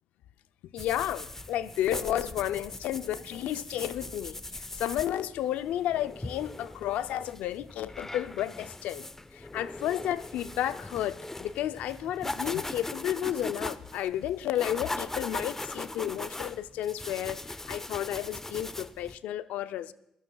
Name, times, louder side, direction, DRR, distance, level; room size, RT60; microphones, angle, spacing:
voice 1, 0.7-9.1 9.3-19.9, left 12 dB, 80° left, 13 dB, 0.5 m, -32 dB
sound 1, 0.8-19.2, left 2 dB, 15° left, 0.6 m, -40 dB
22.0 x 16.5 x 2.3 m, 0.77 s
supercardioid pair, 60°, 2 cm